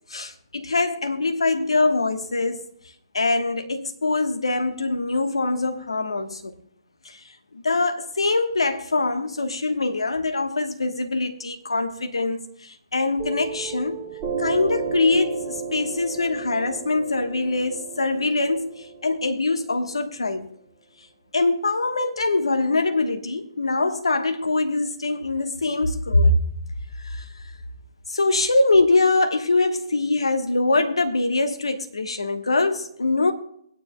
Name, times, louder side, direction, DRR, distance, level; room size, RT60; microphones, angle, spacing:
voice 1, 0.1-2.6 3.1-6.5 7.0-14.0 14.4-20.5 21.3-26.4 27.0-27.3 28.1-33.3, left 2 dB, 85° left, 1.2 m, -23 dB
Piano, 13.2-20.2, right 5 dB, 25° right, 2.8 m, -33 dB
23.0 x 9.7 x 2.2 m
figure-of-eight pair, 130°, 3 cm